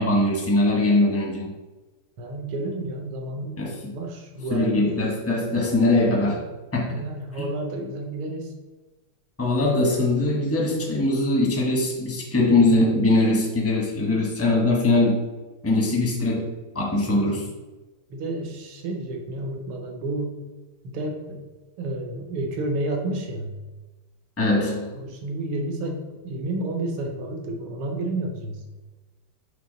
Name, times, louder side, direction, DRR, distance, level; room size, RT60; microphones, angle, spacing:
voice 1, 0.0-1.5 3.6-3.9 4.5-6.5 6.7-7.0 9.4-15.2 15.6-17.5 24.4-24.9, left 2 dB, 20° left, -2 dB, 0.4 m, -21 dB
voice 2, 2.2-4.9 6.9-8.5 12.5-12.8 17.1-17.3 18.1-20.4 20.8-21.4 21.8-23.6 24.9-28.6, right 2 dB, 80° right, 2 dB, 1.7 m, -31 dB
6.0 x 3.1 x 5.0 m, 1.2 s
omnidirectional pair, 2.3 m